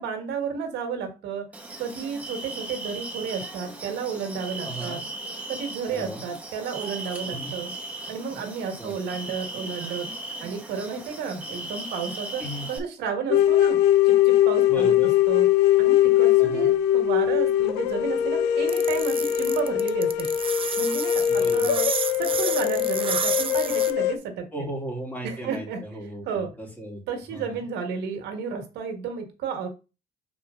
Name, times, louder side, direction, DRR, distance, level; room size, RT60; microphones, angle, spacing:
voice 1, 0.0-1.4 1.8-5.0 5.5-7.7 8.1-10.1 10.4-12.4 12.7-13.8 14.0-14.9 15.3-15.5 15.8-20.3 20.8-21.8 22.2-24.5 25.2-25.8 26.3-26.5 27.1-29.7, right 6 dB, 80° right, 5 dB, 1.6 m, -32 dB
sound 1, 1.5-12.8, right 2 dB, 10° right, 1.6 m, -37 dB
voice 2, 4.6-5.0 5.9-6.2 7.3-7.5 8.8-8.9 12.4-12.7 14.7-15.1 16.4-16.7 21.3-21.7 24.5-27.0 27.3-27.6, right 1 dB, 10° left, -1 dB, 2.7 m, -36 dB
sound 2, 13.3-24.1, left 12 dB, 85° left, 0.7 m, -21 dB
sound 3, 18.7-23.9, right 7 dB, 30° right, 0.6 m, -30 dB
6.3 x 4.2 x 3.7 m, 0.30 s
cardioid pair, 110°, 17 cm